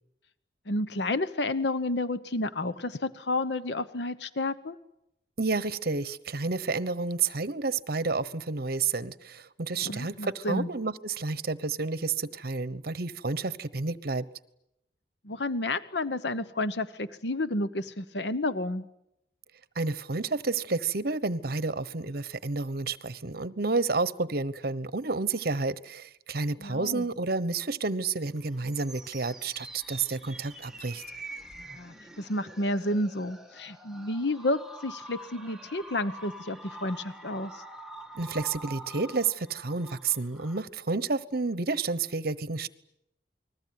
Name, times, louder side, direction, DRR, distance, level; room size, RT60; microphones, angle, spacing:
voice 1, 0.7-4.8 9.8-10.7 15.2-18.8 26.6-27.1 31.7-37.6, left 2 dB, 75° left, 13 dB, 1.0 m, -31 dB
voice 2, 5.4-14.3 19.7-31.0 38.1-42.7, right 4 dB, 60° right, 16 dB, 1.1 m, -30 dB
sound 1, 28.2-40.6, right 2 dB, 5° right, 2.1 m, -46 dB
29.0 x 21.0 x 9.5 m, 0.82 s
head